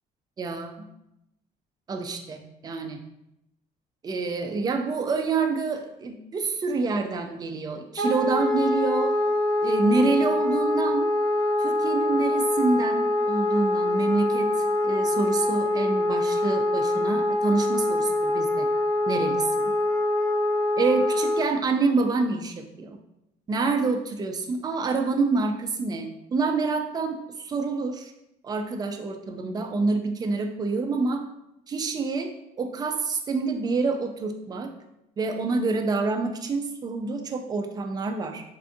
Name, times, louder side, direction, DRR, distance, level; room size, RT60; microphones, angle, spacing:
voice 1, 0.4-0.9 1.9-3.0 4.0-9.1 9.6-11.1 11.6-18.7 19.1-19.5 20.8-23.0 23.5-28.1 28.4-31.2 31.7-32.3 32.6-34.7 35.2-38.4, right 3 dB, 25° right, 5 dB, 0.4 m, -27 dB
Wind instrument woodwind instrument, 8.0-21.5, left 1 dB, 25° left, 0.9 m, -24 dB
3.3 x 2.5 x 2.6 m, 0.83 s
cardioid pair, 110°, 17 cm